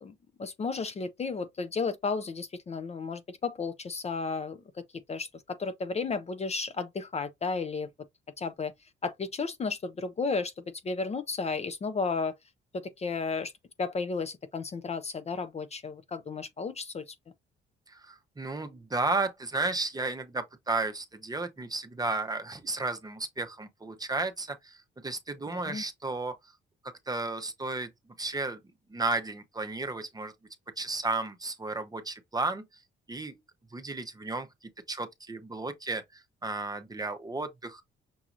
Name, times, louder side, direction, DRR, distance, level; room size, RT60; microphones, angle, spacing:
voice 1, 0.0-4.8 5.1-7.9 8.4-8.7 9.0-10.5 10.8-12.3 12.7-13.5 13.8-17.1 25.5-25.8, left 4 dB, 35° left, 0.5 m, -33 dB
voice 2, 17.9-26.3 27.1-27.9 28.2-28.6 28.9-30.3 30.8-32.6 33.1-33.3 33.7-37.8, right 3 dB, 20° right, 0.7 m, -33 dB
6.1 x 2.8 x 2.4 m
cardioid pair, 90°, 20 cm